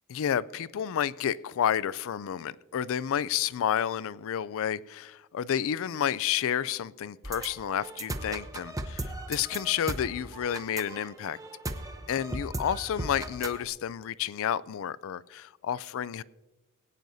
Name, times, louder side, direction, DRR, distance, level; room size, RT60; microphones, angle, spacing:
voice 1, 0.1-11.4 12.1-16.2, left 9 dB, 65° left, 20 dB, 0.4 m, -30 dB
sound 1, 7.2-13.6, right 2 dB, 15° right, 0.7 m, -37 dB
21.0 x 9.1 x 2.7 m, 1.1 s
head